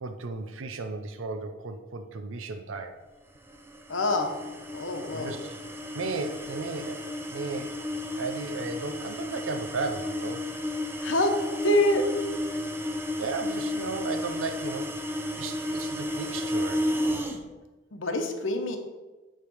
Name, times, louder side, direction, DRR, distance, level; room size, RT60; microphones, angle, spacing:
voice 1, 0.0-3.0 5.1-5.6 5.9-7.8 8.2-10.4 13.2-14.9 15.4-16.9, right 3 dB, 85° right, 7 dB, 0.6 m, -35 dB
sound 1, 3.5-17.4, left 1 dB, 10° right, 0.7 m, -33 dB
voice 2, 3.9-4.3 4.7-5.4 11.0-12.0 17.9-18.8, left 1 dB, 75° left, 5 dB, 1.1 m, -26 dB
9.8 x 3.3 x 6.3 m, 1.2 s
head